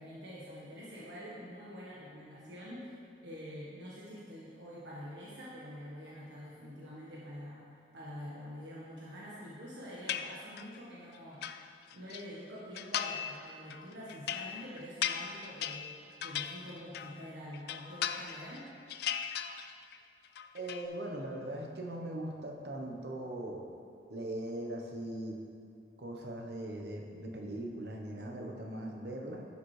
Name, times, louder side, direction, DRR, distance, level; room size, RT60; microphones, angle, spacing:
voice 1, 0.0-2.9 3.2-7.6 7.9-11.6 11.9-15.9 16.2-18.6, equal, 80° right, -7 dB, 1.3 m, -46 dB
sound 1, 10.1-10.8 11.1-12.2 12.7-13.4 13.7-17.2 17.5-18.6 18.9-20.0 20.2-20.9, left 9 dB, 60° left, 0.3 m, -38 dB
voice 2, 20.5-23.7 24.1-25.4 26.0-29.5, right 1 dB, 65° right, 1 dB, 1.0 m, -40 dB
10.5 x 7.1 x 3.2 m, 2.4 s
head